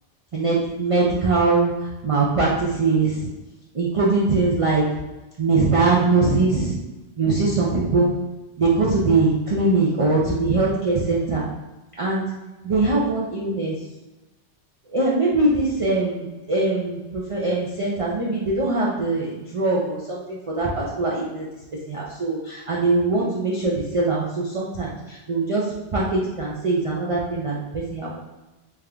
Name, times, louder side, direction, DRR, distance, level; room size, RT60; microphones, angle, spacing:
voice 1, 0.3-3.3 3.7-4.9 5.4-6.8 7.2-8.1 8.6-11.5 12.0-12.3 12.6-13.8 14.9-21.5 21.9-28.2, right 3 dB, 45° right, -5 dB, 0.4 m, -22 dB
3.4 x 2.5 x 3.3 m, 1.1 s
omnidirectional pair, 1.2 m